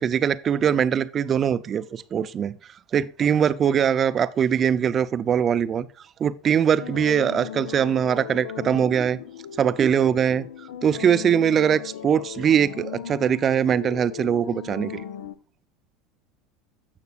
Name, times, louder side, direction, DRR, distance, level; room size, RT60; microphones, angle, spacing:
voice 1, 0.0-2.6 2.9-5.9 6.2-9.2 9.6-10.4 10.8-15.0, right 8 dB, 35° right, 0.5 m, -22 dB
sound 1, 6.8-15.4, left 9 dB, 70° left, 0.6 m, -37 dB
16.0 x 5.9 x 2.4 m
hypercardioid pair, 75°, 0 cm